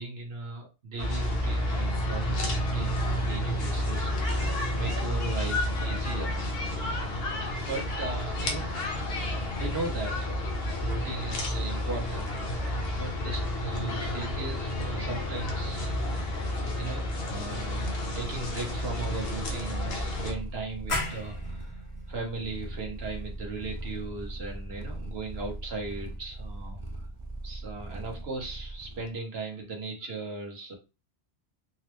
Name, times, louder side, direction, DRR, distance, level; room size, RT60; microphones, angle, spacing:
voice 1, 0.0-4.1 4.8-6.4 7.5-9.3 9.6-10.5 10.8-12.5 12.8-16.1 16.8-27.1 27.4-30.7, right 3 dB, 70° right, 0 dB, 1.2 m, -38 dB
sound 1, 1.0-20.3, left 1 dB, 65° left, 1.0 m, -30 dB
Purr, 17.9-29.1, right 1 dB, 40° right, 0.4 m, -40 dB
sound 2, 20.9-26.3, left 2 dB, 35° left, 0.7 m, -39 dB
3.8 x 2.0 x 3.0 m, 0.29 s
omnidirectional pair, 1.1 m